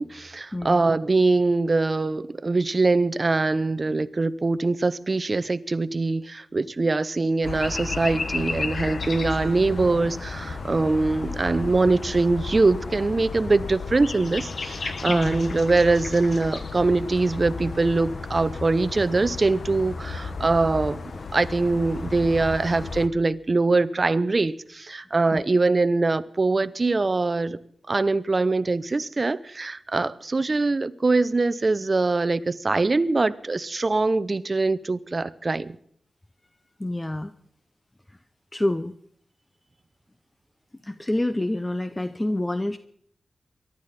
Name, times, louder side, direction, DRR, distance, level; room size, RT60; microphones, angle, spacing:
voice 1, 0.0-21.0 21.3-27.6 27.9-35.8, right 3 dB, 35° right, 0.7 m, -23 dB
voice 2, 0.5-0.9 15.1-15.4 25.3-25.4 36.8-37.3 38.5-38.9 40.8-42.8, left 1 dB, 15° left, 0.6 m, -27 dB
sound 1, 7.4-23.1, left 4 dB, 60° left, 1.1 m, -33 dB
23.5 x 12.0 x 4.2 m
wide cardioid pair, 80°, 0 cm